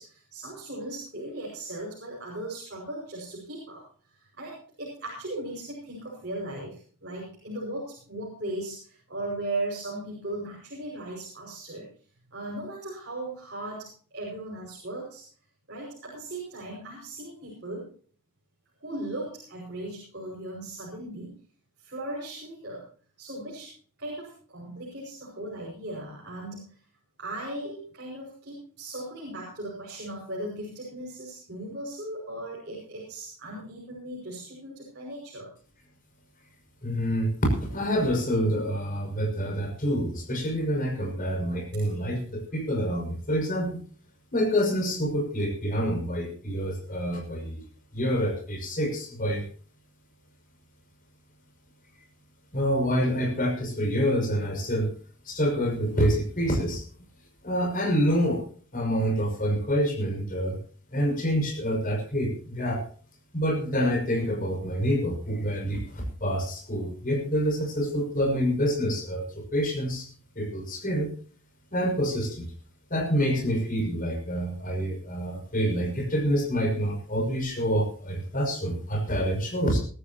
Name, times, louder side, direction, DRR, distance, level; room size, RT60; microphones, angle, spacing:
voice 1, 0.0-3.8 4.1-11.9 12.3-15.2 15.7-17.9 18.8-21.4 21.8-22.8 23.2-23.7 24.0-26.7 27.2-35.5, right 1 dB, 50° right, -4 dB, 5.8 m, -37 dB
voice 2, 36.8-43.8 44.3-47.6 47.9-49.5 52.5-54.9 55.3-56.8 57.4-58.4 58.7-60.6 60.9-62.8 63.3-70.1 70.4-71.1 71.7-72.4 72.9-79.8, equal, 40° left, 1 dB, 6.1 m, -27 dB
22.0 x 13.0 x 2.9 m, 0.43 s
head